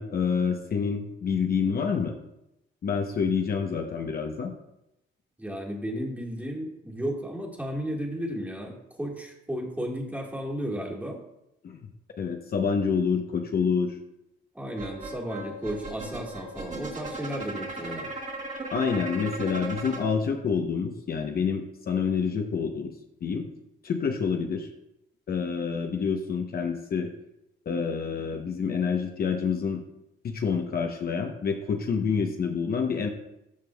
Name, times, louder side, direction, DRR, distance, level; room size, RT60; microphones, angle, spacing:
voice 1, 0.0-2.1 2.8-4.5 11.6-11.9 12.2-14.0 18.7-22.9 23.2-23.4 23.8-24.7 25.3-27.1 27.7-29.8 30.2-33.1, left 6 dB, 50° left, 3 dB, 0.8 m, -27 dB
voice 2, 5.4-11.2 14.5-18.1, equal, 5° right, -1 dB, 1.7 m, -34 dB
sound 1, 14.8-20.0, right 2 dB, 40° right, 1.7 m, -37 dB
13.0 x 5.2 x 2.3 m, 0.85 s
cardioid pair, 90°, 20 cm